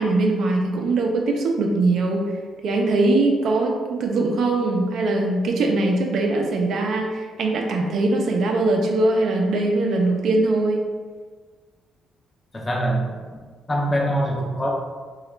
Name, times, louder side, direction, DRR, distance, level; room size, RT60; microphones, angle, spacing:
voice 1, 0.0-2.2 2.6-10.8, right 2 dB, 70° right, 1 dB, 0.5 m, -21 dB
voice 2, 12.5-13.1 13.7-14.7, right 1 dB, 20° left, -3 dB, 0.5 m, -23 dB
2.8 x 2.3 x 3.1 m, 1.5 s
cardioid pair, 90°, 0 cm